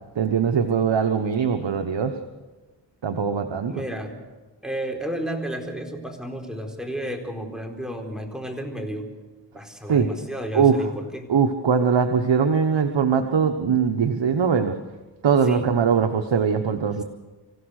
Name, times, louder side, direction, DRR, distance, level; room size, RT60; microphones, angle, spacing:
voice 1, 0.1-2.2 3.0-3.8 9.9-10.1 10.5-10.9 11.3-14.8 15.2-17.0, right 6 dB, 80° right, 6 dB, 1.3 m, -21 dB
voice 2, 3.7-4.1 4.6-9.1 9.5-11.3 15.5-15.7, right 1 dB, ahead, 3 dB, 4.4 m, -32 dB
26.0 x 16.0 x 6.5 m, 1.2 s
cardioid pair, 50°, 44 cm